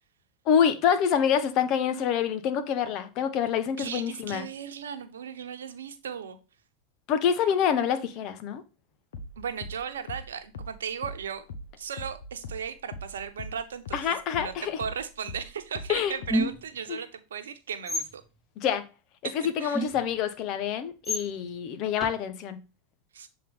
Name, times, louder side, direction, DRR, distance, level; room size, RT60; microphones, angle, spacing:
voice 1, 0.4-4.5 7.1-8.6 13.9-14.8 15.9-16.2 16.9-17.0 18.6-18.9 19.3-22.6, left 8 dB, 50° left, 1.1 m, -26 dB
voice 2, 3.8-6.4 9.4-11.4 11.8-18.2 19.6-19.8 23.1-23.3, right 7 dB, 85° right, 0.9 m, -36 dB
sound 1, 9.1-14.1 14.3-16.6, left 1 dB, 80° left, 1.1 m, -40 dB
sound 2, 16.3-16.8 17.9-18.1 19.7-20.2 21.0-21.2 22.0-22.1, equal, 10° left, 2.1 m, -28 dB
7.4 x 3.9 x 3.4 m
hypercardioid pair, 100°, 0 cm